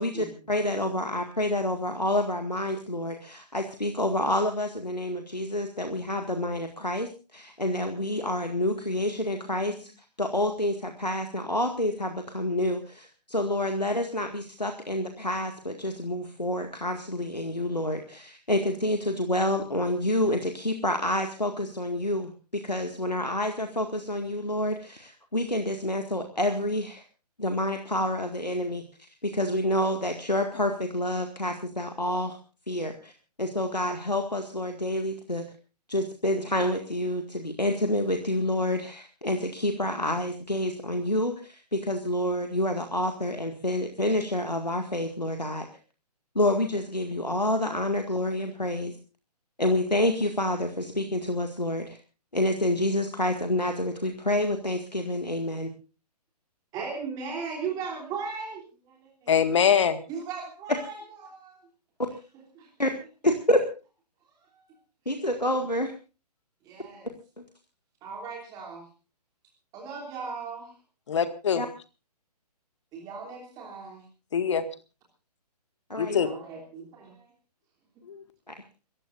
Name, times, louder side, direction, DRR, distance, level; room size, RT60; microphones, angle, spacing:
voice 1, 0.0-9.9 10.2-27.0 27.4-28.8 29.2-32.4 32.7-33.1 33.4-35.4 35.9-45.7 46.4-49.0 49.6-52.0 52.3-55.7 62.0-62.1 62.8-62.9 63.2-63.6 65.1-65.9 71.5-71.7 75.9-76.2 78.5-78.6, left 1 dB, 90° left, 2.0 m, -28 dB
voice 2, 56.7-59.3 60.1-61.0 61.2-61.6 62.5-62.7 64.5-64.6 66.6-67.1 68.0-68.8 69.7-70.8 72.9-74.0 76.2-77.3, right 5 dB, 20° right, 3.3 m, -37 dB
voice 3, 59.3-60.0 71.1-71.6 74.3-74.6 76.0-76.3 78.1-78.2, left 7 dB, 45° left, 1.9 m, -23 dB
28.5 x 15.0 x 2.6 m
figure-of-eight pair, 130°, 21 cm